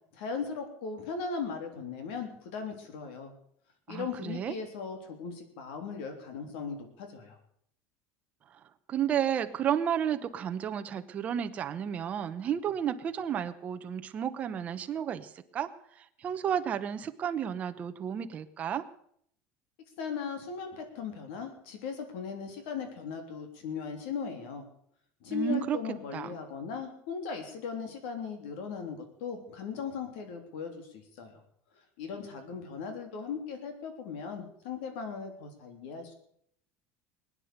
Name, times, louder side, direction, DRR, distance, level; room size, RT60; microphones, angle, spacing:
voice 1, 0.1-3.3 3.9-7.4 20.0-24.6 25.2-31.3 32.0-36.1, left 6 dB, 85° left, 6 dB, 3.4 m, -38 dB
voice 2, 3.9-4.5 8.9-15.7 16.0-18.8 25.3-25.8 26.1-26.3, right 9 dB, 25° right, 9 dB, 0.9 m, -32 dB
21.0 x 9.7 x 6.8 m, 0.67 s
cardioid pair, 180°, 6 cm